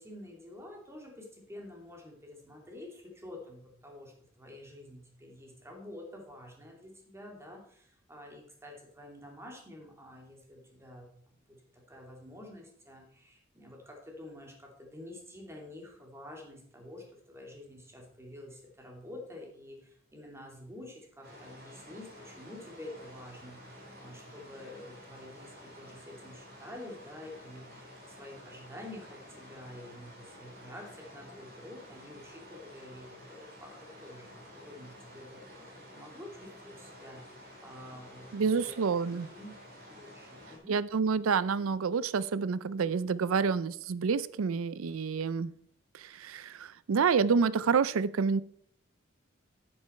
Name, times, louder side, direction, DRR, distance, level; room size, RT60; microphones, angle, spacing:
voice 1, 0.0-23.6 24.0-38.8 39.1-39.6 39.9-40.8, left 1 dB, 15° right, 1 dB, 2.7 m, -49 dB
sound 1, 21.2-40.6, equal, 50° right, 3.6 m, -51 dB
voice 2, 38.3-39.3 40.7-45.5 45.9-48.4, right 5 dB, 75° right, 17 dB, 0.5 m, -28 dB
9.8 x 8.7 x 4.4 m, 0.64 s
head